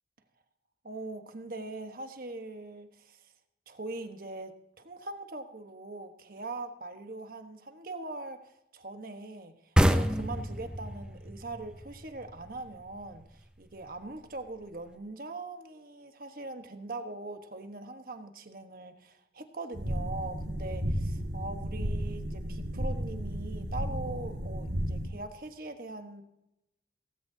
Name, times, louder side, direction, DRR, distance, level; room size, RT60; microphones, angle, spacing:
voice 1, 0.8-3.3 3.7-26.2, right 2 dB, 50° right, 7 dB, 1.2 m, -42 dB
sound 1, 9.8-13.2, equal, 5° right, 0.6 m, -28 dB
sound 2, 19.7-25.1, equal, 75° right, 2.3 m, -33 dB
17.5 x 15.5 x 2.8 m, 0.86 s
head